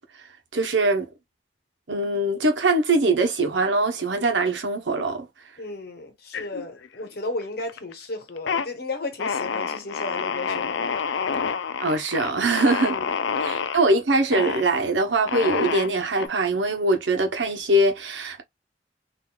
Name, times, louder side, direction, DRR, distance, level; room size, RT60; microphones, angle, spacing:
voice 1, 0.5-1.1 1.9-5.3 11.8-13.0 13.4-18.4, right 2 dB, 80° right, 0.9 m, -22 dB
voice 2, 5.6-11.1 12.8-13.1, left 2 dB, 60° left, 1.2 m, -34 dB
sound 1, 6.3-7.1 7.4-7.9 8.3-8.7 9.2-13.8 14.3-14.7 15.3-16.3, left 6 dB, 80° left, 0.5 m, -28 dB
3.7 x 2.6 x 2.3 m
head